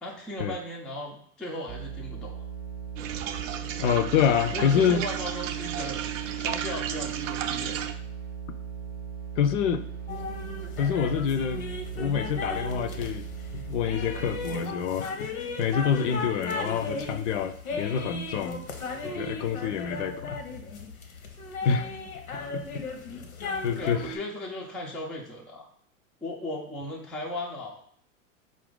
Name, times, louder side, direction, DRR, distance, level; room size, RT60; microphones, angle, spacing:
voice 1, 0.0-2.4 4.5-6.0 6.4-7.8 23.8-25.6 26.2-27.8, left 1 dB, ahead, -3 dB, 0.3 m, -36 dB
sound 1, 1.7-14.6, right 7 dB, 25° right, 0.7 m, -38 dB
sound 2, 3.0-7.9, right 10 dB, 65° right, 0.5 m, -33 dB
voice 2, 3.8-5.0 9.4-9.9 10.8-11.6 12.0-13.3 13.5-15.3 15.6-18.6 19.0-20.4 21.6-21.9 22.3-22.8 23.6-24.2, left 7 dB, 60° left, 11 dB, 0.5 m, -27 dB
sound 3, 10.1-24.2, left 3 dB, 85° left, 0.8 m, -36 dB
4.2 x 2.5 x 3.7 m, 0.62 s
hypercardioid pair, 100°, 42 cm